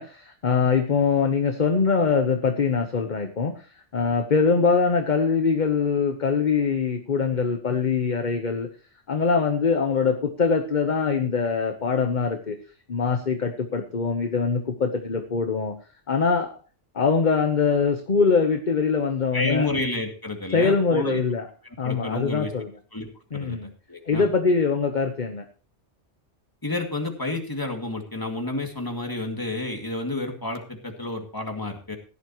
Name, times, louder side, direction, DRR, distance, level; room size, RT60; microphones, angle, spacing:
voice 1, 0.0-3.7 3.9-8.7 9.1-12.6 12.9-15.7 16.1-16.6 16.9-19.7 20.5-21.4 21.8-22.7 23.3-23.7 24.1-25.5, left 5 dB, 40° left, 6 dB, 1.2 m, -23 dB
voice 2, 19.3-21.2 21.8-22.5 22.9-23.1 23.3-24.2 26.6-32.0, left 2 dB, 15° left, 3 dB, 2.3 m, -30 dB
16.5 x 11.0 x 3.0 m, 0.37 s
omnidirectional pair, 1.2 m